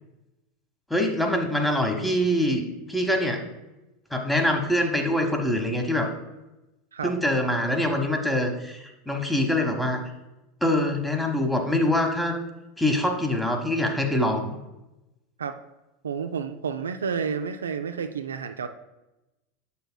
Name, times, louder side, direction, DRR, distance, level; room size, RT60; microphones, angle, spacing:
voice 1, 0.9-2.6 2.9-3.4 4.1-6.1 7.0-10.0 10.6-12.4 12.8-14.6, left 1 dB, 5° left, 3 dB, 1.1 m, -24 dB
voice 2, 16.0-18.7, right 6 dB, 80° right, 8 dB, 0.4 m, -30 dB
7.7 x 6.7 x 2.2 m, 0.98 s
figure-of-eight pair, 85°, 0 cm